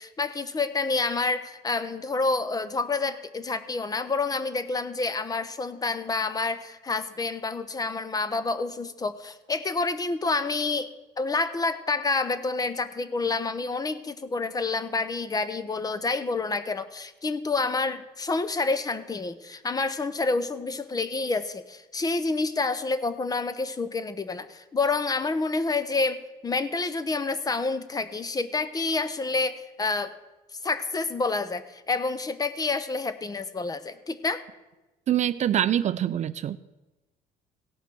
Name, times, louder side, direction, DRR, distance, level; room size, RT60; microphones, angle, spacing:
voice 1, 0.0-10.9 11.2-30.1 30.5-34.4, left 3 dB, 20° left, 13 dB, 0.7 m, -28 dB
voice 2, 35.1-36.6, right 11 dB, 45° right, 15 dB, 0.4 m, -24 dB
16.5 x 5.8 x 6.1 m, 1.1 s
cardioid pair, 110°, 17 cm